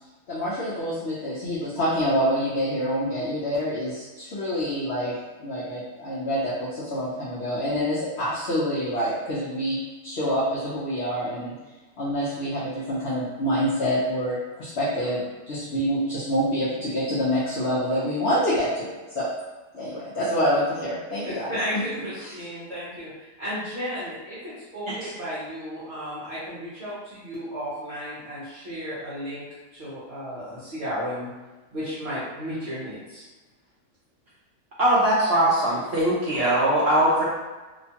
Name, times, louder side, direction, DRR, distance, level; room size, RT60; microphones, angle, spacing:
voice 1, 0.3-9.8 10.0-11.5 12.0-19.3 19.7-21.6 22.2-22.4, equal, 55° left, -10 dB, 0.7 m, -26 dB
voice 2, 21.2-29.4 29.7-31.3 31.7-33.2, equal, 50° right, -12 dB, 1.0 m, -34 dB
voice 3, 34.8-37.2, right 1 dB, 70° right, -7 dB, 0.6 m, -21 dB
2.9 x 2.2 x 2.8 m, 1.2 s
omnidirectional pair, 1.7 m